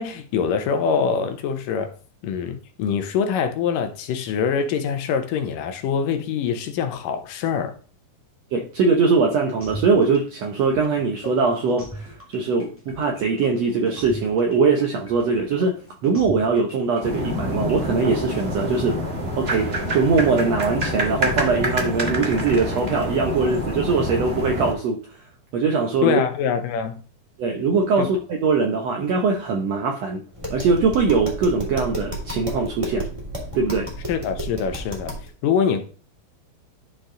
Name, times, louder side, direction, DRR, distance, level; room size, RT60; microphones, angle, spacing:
voice 1, 0.0-1.9 2.2-7.8 26.0-27.0 28.0-28.1 34.1-35.1 35.4-35.8, left 6 dB, 75° left, 7 dB, 2.4 m, -24 dB
voice 2, 8.5-19.0 19.4-25.0 25.5-26.2 27.4-33.1 33.5-33.9, right 4 dB, 75° right, 2 dB, 1.5 m, -21 dB
sound 1, 9.6-18.3, right 1 dB, 20° left, 0.3 m, -39 dB
sound 2, 17.0-24.7, equal, 55° right, 0.7 m, -26 dB
Tap, 30.3-35.3, right 1 dB, 10° right, 2.1 m, -32 dB
11.5 x 4.6 x 3.8 m, 0.38 s
omnidirectional pair, 4.2 m